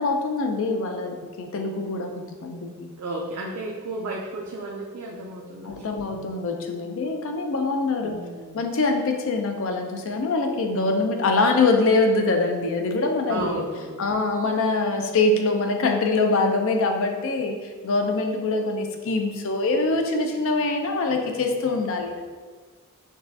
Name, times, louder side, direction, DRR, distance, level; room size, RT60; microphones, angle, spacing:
voice 1, 0.0-2.9 5.6-8.2 8.5-13.6 14.0-17.6 17.8-22.3, left 3 dB, 65° left, 4 dB, 0.5 m, -24 dB
voice 2, 3.0-5.8 8.0-8.6 13.3-14.0, right 2 dB, 90° right, -2 dB, 0.5 m, -33 dB
6.1 x 2.3 x 2.7 m, 1.5 s
head